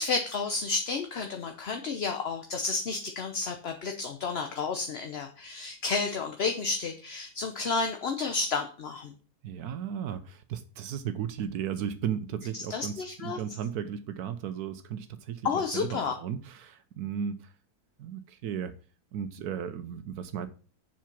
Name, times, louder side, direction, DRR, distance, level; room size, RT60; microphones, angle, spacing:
voice 1, 0.0-9.1 12.7-13.4 15.4-16.1, left 4 dB, 50° left, 1.0 m, -31 dB
voice 2, 9.4-17.5 18.0-18.7 19.1-20.5, right 8 dB, 80° right, 1.2 m, -35 dB
7.3 x 6.0 x 5.9 m
omnidirectional pair, 1.6 m